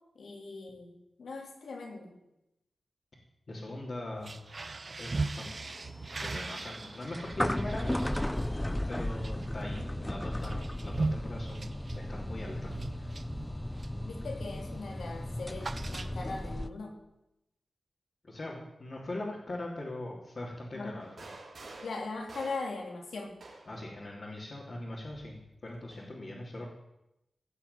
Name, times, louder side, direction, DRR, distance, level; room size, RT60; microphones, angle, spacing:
voice 1, 0.1-2.2 14.0-17.0 20.7-21.0 21.8-23.3, left 3 dB, 85° left, 1 dB, 2.9 m, -40 dB
voice 2, 3.5-4.4 5.0-5.5 6.2-7.9 8.9-13.1 18.2-21.3 23.7-26.7, left 1 dB, 45° left, -5 dB, 3.2 m, -41 dB
sound 1, 4.1-14.1 14.4-14.7 14.9-16.5, right 3 dB, 40° right, 0.8 m, -39 dB
sound 2, 5.4-16.7, left 1 dB, 10° left, 0.5 m, -36 dB
sound 3, 21.0-23.9 25.0-26.1, right 2 dB, 65° right, 3.5 m, -50 dB
16.5 x 5.8 x 9.7 m, 0.89 s
wide cardioid pair, 105°, 0 cm